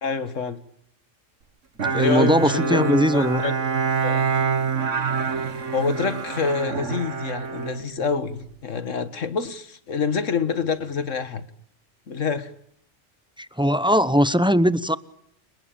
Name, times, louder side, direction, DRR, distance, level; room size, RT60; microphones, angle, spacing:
voice 1, 0.0-0.6 1.9-3.6 4.0-4.3 5.7-11.4 12.1-12.5, left 5 dB, 85° left, 2.0 m, -26 dB
Bowed string instrument, 1.8-8.5, right 5 dB, 80° right, 2.0 m, -26 dB
voice 2, 1.9-3.4 13.4-15.0, equal, 5° right, 0.7 m, -20 dB
30.0 x 18.5 x 8.8 m
omnidirectional pair, 1.3 m